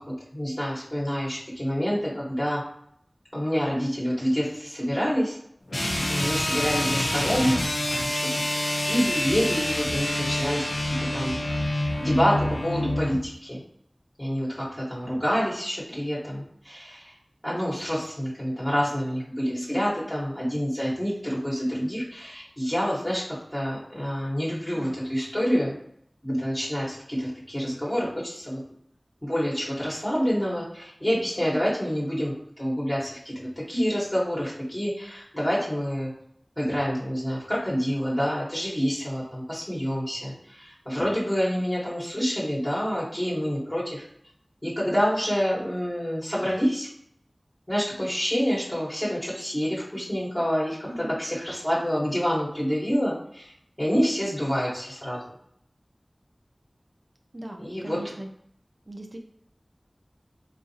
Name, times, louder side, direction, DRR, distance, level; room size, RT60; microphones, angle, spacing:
voice 1, 0.0-2.6 3.3-5.4 6.1-7.6 7.9-8.4 8.8-11.4 11.8-13.6 14.2-17.1 17.4-25.7 26.2-28.6 29.2-36.1 36.6-44.0 44.6-46.9 47.7-55.2 57.6-58.0, equal, 25° left, -7 dB, 1.1 m, -27 dB
sound 1, 5.7-13.2, left 1 dB, 85° left, 0.5 m, -27 dB
voice 2, 50.9-51.2 57.3-58.3 58.9-59.2, right 1 dB, 45° right, 2 dB, 0.4 m, -39 dB
3.8 x 2.4 x 2.7 m, 0.70 s
wide cardioid pair, 50°, 0 cm